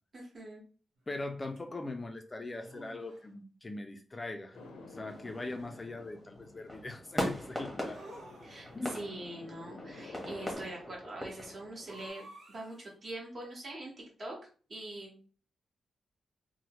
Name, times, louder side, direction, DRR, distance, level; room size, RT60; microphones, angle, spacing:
voice 1, 0.1-0.6 8.4-12.2 12.5-13.9 14.2-14.4 14.7-15.2, right 1 dB, 45° right, -2 dB, 1.2 m, -43 dB
voice 2, 1.1-8.0 8.7-9.0, left 2 dB, 25° left, 5 dB, 0.3 m, -41 dB
sound 1, 1.6-1.7 2.6-3.3 4.5-5.3 7.9-9.0 11.9-12.9, right 1 dB, 75° right, 0.8 m, -53 dB
sound 2, 4.5-10.6, left 3 dB, 90° left, 0.5 m, -51 dB
sound 3, 5.1-12.1, equal, ahead, 0.9 m, -41 dB
2.9 x 2.0 x 2.9 m, 0.40 s
cardioid pair, 95°, 0 cm